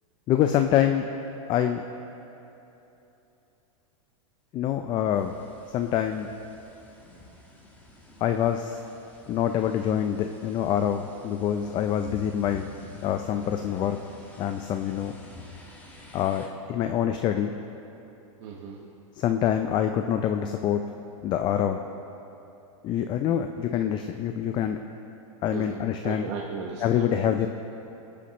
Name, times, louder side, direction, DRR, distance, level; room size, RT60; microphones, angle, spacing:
voice 1, 0.3-1.1 1.5-1.8 4.5-5.4 5.7-6.3 8.2-8.8 9.3-12.7 13.0-14.0 14.4-15.1 16.1-17.5 19.2-20.8 21.2-21.8 22.8-24.8 25.4-26.2 26.8-27.5, left 10 dB, 25° left, 7 dB, 0.4 m, -25 dB
sound 1, 5.1-16.5, left 2 dB, 10° left, 1.4 m, -48 dB
voice 2, 18.4-18.8 25.5-27.5, right 5 dB, 60° right, -2 dB, 1.2 m, -37 dB
20.0 x 8.4 x 2.9 m, 3.0 s
supercardioid pair, 140°, 17 cm